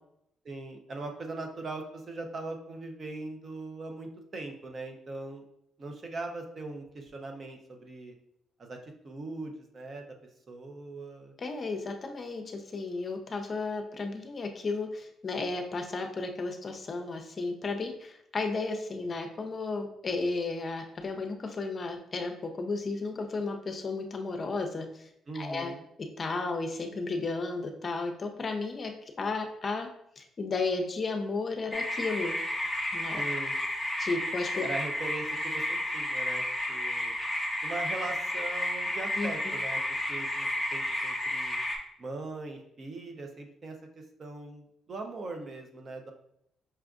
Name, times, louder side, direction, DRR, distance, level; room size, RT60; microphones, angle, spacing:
voice 1, 0.4-5.4 5.8-8.1 8.6-10.1 10.5-11.3 25.3-25.8 33.2-33.6 34.6-37.1 37.6-39.8 40.1-41.6 42.0-43.8 44.2-46.1, right 2 dB, 45° right, 3 dB, 0.7 m, -40 dB
voice 2, 11.4-25.1 25.3-25.7 26.2-28.9 29.2-29.9 30.2-32.4 32.9-33.2 34.0-34.7 39.2-39.5, left 3 dB, 40° left, 4 dB, 0.6 m, -33 dB
sound 1, 31.7-41.8, left 1 dB, 15° right, 0.9 m, -32 dB
5.5 x 2.5 x 2.4 m, 0.74 s
cardioid pair, 90°, 0 cm